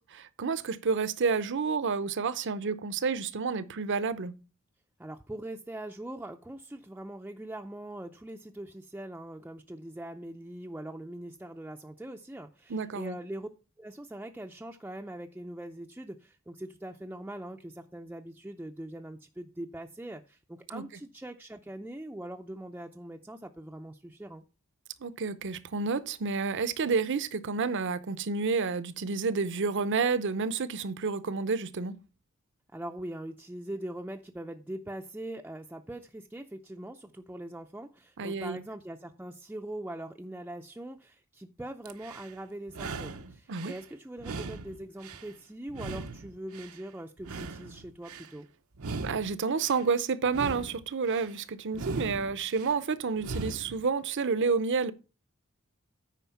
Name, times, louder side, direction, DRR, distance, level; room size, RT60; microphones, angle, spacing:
voice 1, 0.0-4.3 12.7-13.2 20.7-20.8 25.0-32.0 38.2-38.6 43.5-43.7 49.0-54.9, right 5 dB, 60° right, 0.6 m, -30 dB
voice 2, 5.0-13.5 13.8-24.4 32.7-48.5, right 1 dB, 10° right, 0.5 m, -42 dB
sound 1, 41.9-42.3 42.7-43.8 44.2-45.3 45.7-46.8 47.2-48.3 48.7-49.8 50.2-51.3 51.7-52.7 53.2-53.8, right 3 dB, 85° right, 0.8 m, -39 dB
9.1 x 5.0 x 5.7 m
head